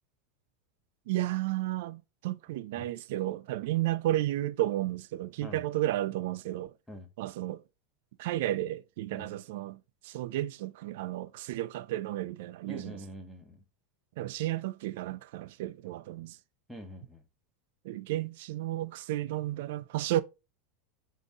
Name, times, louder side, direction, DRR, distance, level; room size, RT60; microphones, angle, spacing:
voice 1, 1.1-6.7 7.2-7.6 8.2-13.0 14.2-16.4 17.8-20.2, right 14 dB, 65° right, 0.3 m, -33 dB
voice 2, 12.7-13.6 16.7-17.2, equal, ahead, 0.9 m, -45 dB
5.2 x 2.7 x 3.5 m
supercardioid pair, 150°, 0 cm